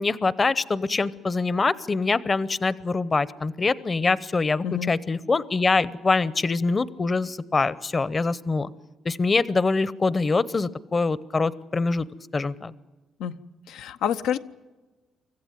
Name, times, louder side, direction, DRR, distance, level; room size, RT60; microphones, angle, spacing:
voice 1, 0.0-8.7 9.0-12.1 12.3-12.7, left 3 dB, 30° left, 19 dB, 0.8 m, -24 dB
voice 2, 13.7-14.4, left 9 dB, 90° left, 9 dB, 0.8 m, -27 dB
25.0 x 15.0 x 9.2 m, 1.2 s
cardioid pair, 90°, 0 cm